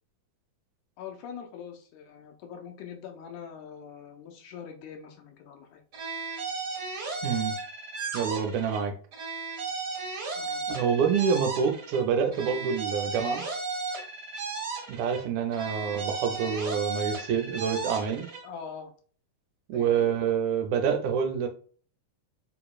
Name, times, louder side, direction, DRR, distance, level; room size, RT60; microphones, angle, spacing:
voice 1, 1.0-5.8 10.4-10.6 18.4-18.9 19.7-20.1, left 7 dB, 85° left, 2 dB, 2.2 m, -43 dB
sound 1, 5.9-8.8 9.1-12.0 12.3-15.2 15.5-18.4, right 4 dB, 45° right, 1.5 m, -35 dB
voice 2, 7.2-7.6 8.1-8.9 10.7-13.4 14.9-18.3 19.7-21.5, right 7 dB, 80° right, 5 dB, 2.1 m, -27 dB
7.1 x 2.9 x 2.3 m, 0.43 s
omnidirectional pair, 3.5 m